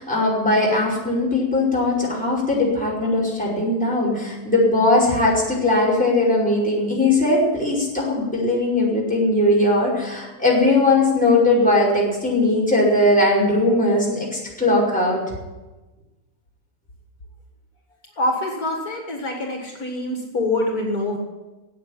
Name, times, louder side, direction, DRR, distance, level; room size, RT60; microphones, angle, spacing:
voice 1, 0.0-15.2, left 2 dB, 5° left, -6 dB, 5.2 m, -19 dB
voice 2, 18.2-21.2, left 2 dB, 65° left, 1 dB, 2.3 m, -25 dB
13.5 x 8.5 x 10.0 m, 1.1 s
omnidirectional pair, 1.7 m